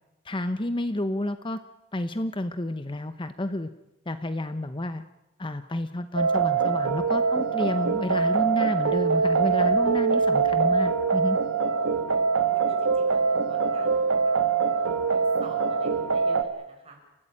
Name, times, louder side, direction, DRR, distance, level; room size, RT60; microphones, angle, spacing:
voice 1, 0.2-1.6 1.9-3.7 4.1-5.0 5.4-11.4, left 1 dB, 25° left, 10 dB, 0.8 m, -30 dB
sound 1, 6.2-16.4, right 5 dB, 90° right, 1.7 m, -23 dB
voice 2, 12.5-17.0, right 2 dB, 30° right, 2 dB, 6.2 m, -48 dB
29.5 x 15.5 x 8.9 m, 0.98 s
head